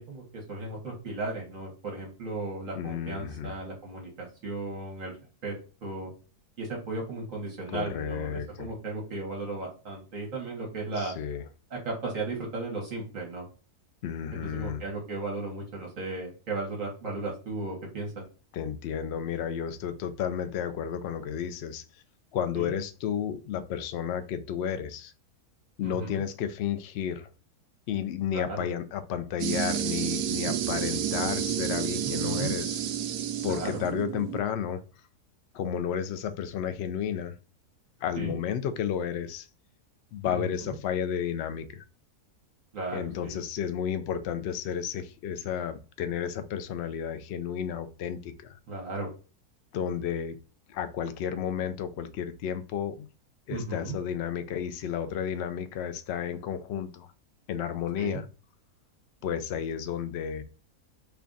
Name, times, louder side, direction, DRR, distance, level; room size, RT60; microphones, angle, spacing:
voice 1, 0.0-5.1 5.4-5.5 5.8-6.1 6.6-11.1 11.7-13.5 14.4-18.1 22.5-22.7 25.8-26.2 28.3-28.7 32.0-32.6 33.4-33.7 38.2-38.4 40.2-40.7 42.7-43.4 48.7-49.1 53.5-54.0 58.0-58.2, right 3 dB, 55° right, 1.4 m, -35 dB
voice 2, 2.8-3.5 7.7-8.7 11.0-11.5 14.0-14.8 18.5-21.8 22.3-25.1 25.8-27.3 27.9-32.8 33.4-34.8 35.5-37.3 38.0-39.5 40.1-41.8 42.9-48.6 49.7-50.4 50.7-53.1 53.5-57.1 57.5-58.2 59.2-60.4, left 8 dB, 75° left, 0.6 m, -32 dB
sound 1, 29.4-34.4, right 10 dB, 80° right, 1.1 m, -30 dB
3.4 x 2.4 x 3.8 m
omnidirectional pair, 1.7 m